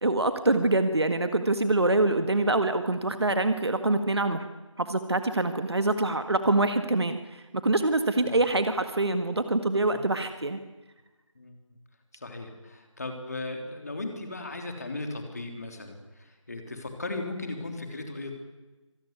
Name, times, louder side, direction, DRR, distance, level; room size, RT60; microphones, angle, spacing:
voice 1, 0.0-4.4 4.8-10.6, right 2 dB, 50° right, 9 dB, 1.7 m, -25 dB
voice 2, 12.1-18.4, left 2 dB, 30° left, 4 dB, 3.4 m, -37 dB
25.5 x 19.0 x 9.6 m, 1.2 s
figure-of-eight pair, 170°, 17 cm